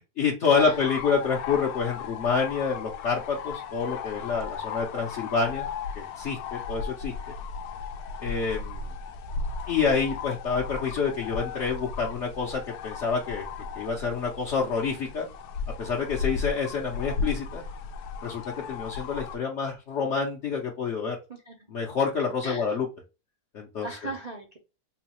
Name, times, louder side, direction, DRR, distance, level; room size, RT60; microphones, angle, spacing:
voice 1, 0.2-5.7 6.0-7.1 8.2-8.9 9.7-13.5 13.7-15.3 15.8-17.6 18.2-18.4 18.7-21.2 21.7-22.9 23.5-24.1, left 5 dB, 60° left, -1 dB, 0.9 m, -28 dB
sound 1, 0.6-19.4, left 5 dB, 85° left, 1.1 m, -35 dB
voice 2, 21.3-21.9 22.4-22.8 23.8-24.6, right 2 dB, 55° right, -1 dB, 0.4 m, -39 dB
3.8 x 2.3 x 2.8 m, 0.30 s
omnidirectional pair, 1.6 m